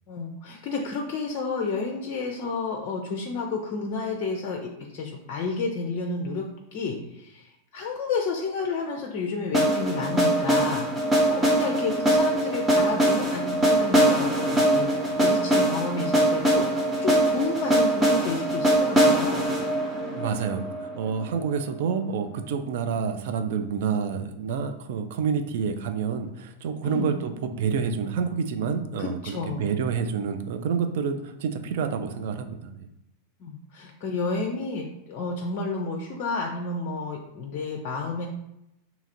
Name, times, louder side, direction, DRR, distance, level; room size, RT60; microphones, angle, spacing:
voice 1, 0.1-6.5 6.7-10.9 11.3-14.9 15.2-19.4 26.8-27.1 29.0-29.7 33.4-38.3, left 3 dB, 40° left, 2 dB, 0.4 m, -31 dB
sound 1, 9.5-21.5, right 1 dB, 10° right, 0.8 m, -22 dB
voice 2, 20.1-32.9, right 6 dB, 55° right, 8 dB, 0.4 m, -28 dB
2.9 x 2.4 x 4.1 m, 0.85 s
figure-of-eight pair, 90°, 0 cm